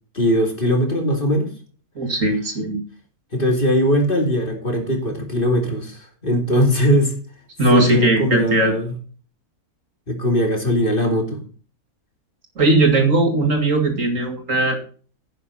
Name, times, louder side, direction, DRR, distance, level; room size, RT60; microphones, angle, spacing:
voice 1, 0.1-1.5 3.3-7.1 7.7-8.9 10.1-11.4, equal, 35° left, 2 dB, 2.9 m, -20 dB
voice 2, 2.0-2.8 7.6-8.7 12.6-14.8, right 2 dB, 55° right, 4 dB, 2.6 m, -18 dB
11.0 x 9.1 x 4.1 m, 0.39 s
omnidirectional pair, 1.6 m